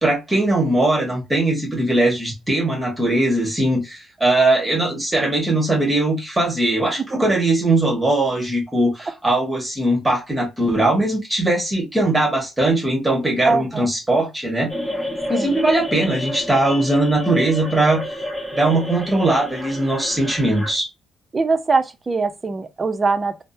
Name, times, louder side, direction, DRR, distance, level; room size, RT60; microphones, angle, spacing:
voice 1, 0.0-14.7 15.3-18.0 18.5-20.9, right 2 dB, 15° right, 1.4 m, -20 dB
voice 2, 13.4-13.9 15.3-15.5 21.3-23.4, right 4 dB, 30° right, 0.5 m, -22 dB
sound 1, 14.7-20.7, left 1 dB, 10° left, 1.6 m, -29 dB
3.4 x 2.0 x 2.6 m
cardioid pair, 90°, 0 cm